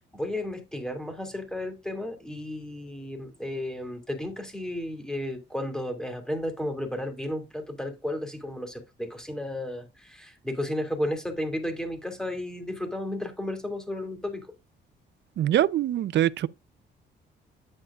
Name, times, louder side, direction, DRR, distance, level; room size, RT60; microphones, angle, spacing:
voice 1, 0.1-14.5, left 1 dB, 5° left, 2.5 m, -33 dB
voice 2, 15.4-16.5, right 12 dB, 60° right, 0.5 m, -23 dB
9.3 x 7.5 x 2.4 m
cardioid pair, 90°, 20 cm